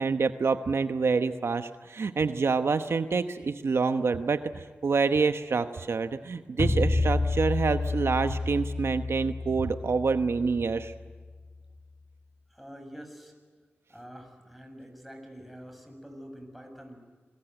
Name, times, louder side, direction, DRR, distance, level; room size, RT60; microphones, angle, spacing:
voice 1, 0.0-10.9, right 4 dB, 75° right, 9 dB, 1.0 m, -27 dB
sound 1, 6.6-11.6, left 3 dB, 30° left, 1.9 m, -30 dB
voice 2, 12.5-13.3 13.9-17.0, equal, ahead, 4 dB, 6.6 m, -46 dB
27.5 x 21.5 x 9.1 m, 1.5 s
wide cardioid pair, 65°, 4 cm